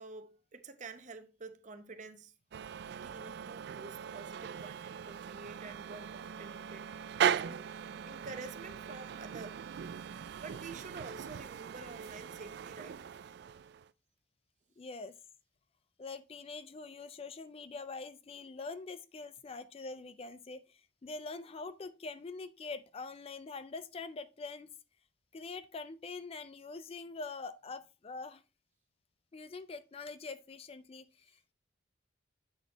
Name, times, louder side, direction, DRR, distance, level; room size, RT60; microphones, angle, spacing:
voice 1, 0.0-2.3 3.0-6.9 7.3-9.6 10.4-13.0, right 4 dB, 40° right, 0.8 m, -48 dB
sound 1, 2.5-13.9, right 8 dB, 60° right, 0.3 m, -39 dB
voice 2, 14.8-15.2 16.0-24.7 25.3-28.4 29.3-31.5, left 3 dB, 30° left, 0.4 m, -44 dB
8.0 x 4.2 x 4.0 m
head